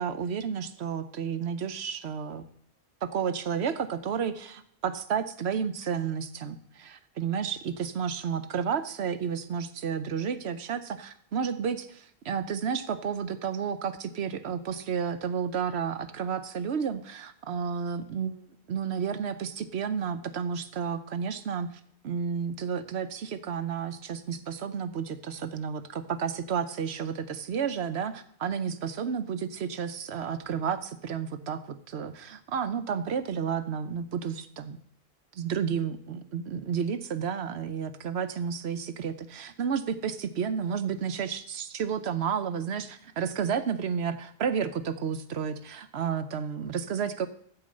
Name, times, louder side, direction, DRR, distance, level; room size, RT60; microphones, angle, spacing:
voice 1, 0.0-2.4 3.0-21.7 22.0-34.8 35.3-47.3, right 7 dB, 80° right, 11 dB, 1.1 m, -31 dB
13.5 x 4.7 x 7.6 m, 0.67 s
omnidirectional pair, 1.1 m